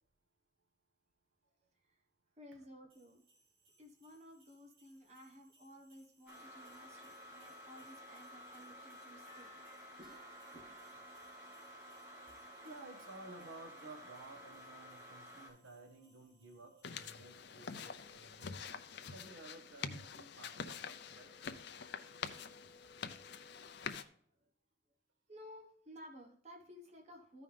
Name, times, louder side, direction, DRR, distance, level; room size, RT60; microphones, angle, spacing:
voice 1, 2.4-3.2 3.8-9.7 10.0-10.2 10.5-10.8 24.4-24.5 25.3-27.4, equal, 35° right, 2 dB, 1.3 m, -56 dB
sound 1, 2.9-20.6, right 4 dB, 50° right, 2.1 m, -67 dB
sound 2, 6.3-15.5, equal, 15° right, 4.1 m, -54 dB
voice 2, 12.6-18.7 19.1-21.6, right 2 dB, 85° right, 5 dB, 1.3 m, -55 dB
sound 3, 16.8-24.0, left 6 dB, 55° left, 0.6 m, -46 dB
14.0 x 5.4 x 3.4 m, 0.64 s
head